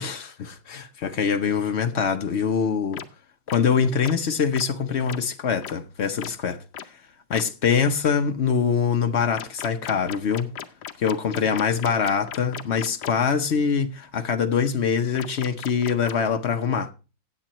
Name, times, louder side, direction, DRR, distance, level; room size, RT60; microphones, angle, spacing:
voice 1, 0.0-3.0 3.5-6.6 7.3-10.5 11.0-16.9, left 6 dB, 55° left, 0.7 m, -24 dB
sound 1, 2.9-3.0 3.5-3.6 4.0-4.1 4.5-4.6 5.1-5.2 5.6-5.7 6.2-6.3 6.7-6.9 7.3-7.4 9.3-13.1 15.1-16.3, left 10 dB, 75° left, 1.4 m, -36 dB
17.5 x 7.7 x 3.0 m
omnidirectional pair, 2.1 m